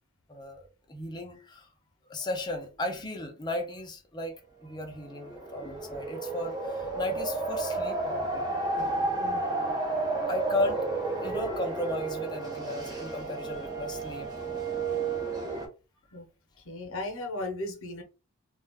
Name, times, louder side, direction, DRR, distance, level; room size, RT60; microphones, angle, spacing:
voice 1, 0.3-0.6 0.9-1.7 2.1-8.5 9.0-9.1 10.0-10.8 11.2-14.5, left 2 dB, 20° left, 0.6 m, -35 dB
sound 1, 5.0-15.7, right 3 dB, 20° right, 0.7 m, -32 dB
voice 2, 9.1-9.8 16.1-16.3 16.6-18.0, left 2 dB, 65° left, 0.8 m, -37 dB
2.4 x 2.2 x 3.4 m
head